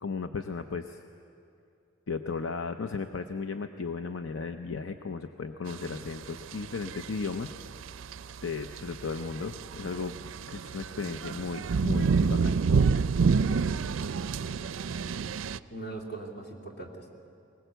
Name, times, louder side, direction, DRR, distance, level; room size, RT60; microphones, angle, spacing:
voice 1, 0.0-1.0 2.1-7.5 8.4-12.6, left 4 dB, 80° left, 7 dB, 0.7 m, -35 dB
sound 1, 5.7-15.6, right 5 dB, 75° right, 0.4 m, -29 dB
voice 2, 14.4-14.8 15.2-15.4 15.7-17.1, right 2 dB, 55° left, 1 dB, 2.7 m, -41 dB
21.0 x 19.5 x 8.1 m, 2.6 s
head